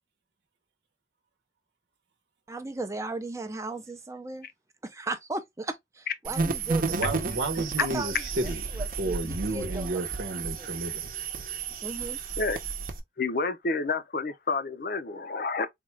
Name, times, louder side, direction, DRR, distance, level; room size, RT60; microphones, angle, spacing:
voice 1, 2.5-4.5 4.8-7.3 7.8-8.2 8.4-10.0 10.6-10.7 11.8-12.2, right 3 dB, 15° right, 0.5 m, -36 dB
sound 1, 6.2-13.0, right 4 dB, 50° right, 0.8 m, -32 dB
voice 2, 6.9-8.6 9.0-11.0, right 2 dB, 90° right, 0.9 m, -32 dB
voice 3, 13.2-15.7, left 3 dB, 55° left, 0.6 m, -29 dB
3.7 x 2.3 x 3.1 m
head